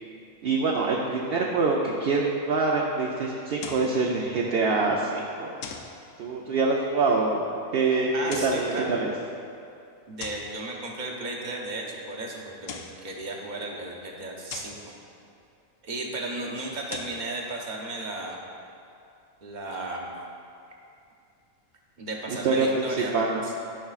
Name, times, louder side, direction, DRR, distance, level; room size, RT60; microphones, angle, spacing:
voice 1, 0.4-5.5 6.2-7.4 7.7-8.1 8.4-9.1 22.3-22.9 23.1-23.4, right 3 dB, 60° right, -2 dB, 0.8 m, -25 dB
sound 1, 3.6-4.0 5.6-6.0 8.1-8.7 10.2-10.6 12.5-13.0 14.5-14.8 16.7-17.2, left 5 dB, 85° left, 1.0 m, -39 dB
voice 2, 8.1-8.9 10.1-14.9 15.8-18.4 19.4-20.1 22.0-23.1 23.4-23.6, right 2 dB, 40° right, -1 dB, 1.0 m, -35 dB
13.5 x 5.7 x 2.4 m, 2.6 s
omnidirectional pair, 1.3 m